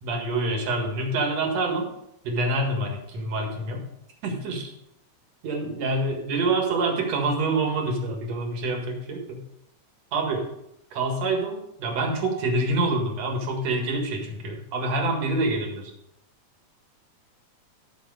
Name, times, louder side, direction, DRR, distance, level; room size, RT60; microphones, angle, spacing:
voice 1, 0.0-1.9 2.2-3.8 4.2-4.7 5.4-9.4 10.1-10.4 10.9-15.9, right 2 dB, 65° right, 2 dB, 2.9 m, -26 dB
12.0 x 6.4 x 4.8 m, 0.81 s
omnidirectional pair, 3.3 m